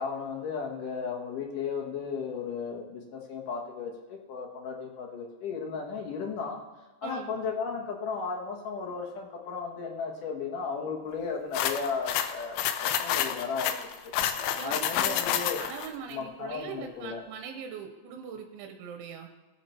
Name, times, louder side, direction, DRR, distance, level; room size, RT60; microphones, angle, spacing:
voice 1, 0.0-6.6 7.0-13.7 14.6-15.6 16.1-17.2, left 5 dB, 65° left, 0 dB, 2.2 m, -35 dB
sound 1, 11.5-15.9, left 10 dB, 80° left, 3.1 m, -29 dB
voice 2, 14.6-15.2 15.6-19.3, right 7 dB, 85° right, 4 dB, 3.3 m, -41 dB
20.5 x 7.5 x 4.4 m, 1.2 s
omnidirectional pair, 5.5 m